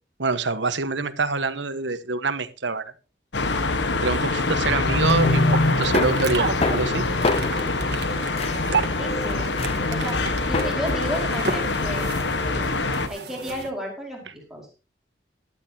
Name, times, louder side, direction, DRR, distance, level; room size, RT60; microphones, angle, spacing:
voice 1, 0.2-2.9 3.9-7.0, right 3 dB, 85° right, 11 dB, 1.4 m, -26 dB
sound 1, 3.3-13.1, left 2 dB, 80° left, 1.4 m, -25 dB
sound 2, 4.8-10.7, left 3 dB, 35° left, 0.5 m, -27 dB
sound 3, 4.8-13.7, right 4 dB, 65° right, 1.4 m, -33 dB
voice 2, 9.0-9.6 9.9-12.2 13.1-14.8, equal, 5° right, -1 dB, 4.8 m, -33 dB
17.5 x 11.5 x 2.9 m, 0.31 s
head